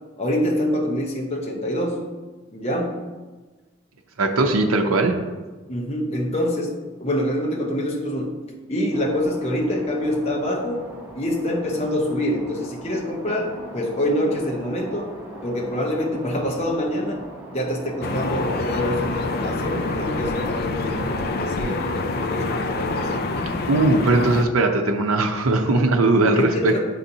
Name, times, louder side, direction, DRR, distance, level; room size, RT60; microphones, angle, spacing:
voice 1, 0.2-2.0 2.5-3.0 5.7-6.7 7.0-8.3 8.7-10.8 11.1-15.1 15.4-17.2 17.5-23.2 26.3-26.9, left 1 dB, 30° left, -1 dB, 0.9 m, -25 dB
voice 2, 4.2-5.1 23.7-26.7, right 2 dB, 85° right, 3 dB, 0.6 m, -19 dB
sound 1, 8.9-21.3, right 1 dB, 10° right, 1.0 m, -40 dB
sound 2, 18.0-24.4, left 3 dB, 45° left, 0.4 m, -26 dB
9.3 x 4.1 x 2.7 m, 1.3 s
head